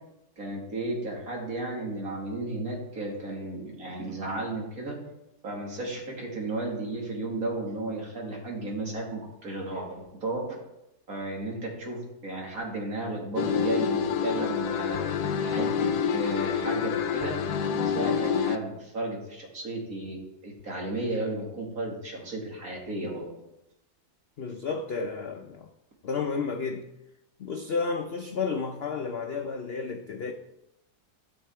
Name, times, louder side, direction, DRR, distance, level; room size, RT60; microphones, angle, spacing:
voice 1, 0.4-4.9 5.4-10.5 11.1-15.0 15.4-23.3, right 2 dB, 55° right, 2.5 m, -34 dB
sound 1, 13.4-18.6, left 7 dB, 75° left, 1.2 m, -27 dB
voice 2, 24.4-25.7 26.0-26.9 27.4-30.3, left 5 dB, 60° left, 0.6 m, -31 dB
13.5 x 5.5 x 4.3 m
omnidirectional pair, 1.8 m